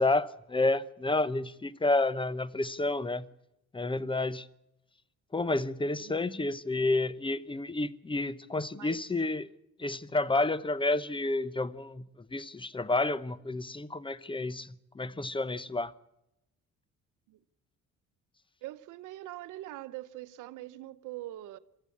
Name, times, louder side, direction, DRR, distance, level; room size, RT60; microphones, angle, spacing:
voice 1, 0.0-3.2 3.7-4.5 5.3-9.4 9.8-12.0 12.3-15.9, left 2 dB, 15° left, 0.9 m, -30 dB
voice 2, 6.0-6.4 8.7-9.1 17.3-17.4 18.6-21.6, right 15 dB, 85° right, 0.9 m, -43 dB
24.0 x 13.5 x 8.5 m
cardioid pair, 90°, 30 cm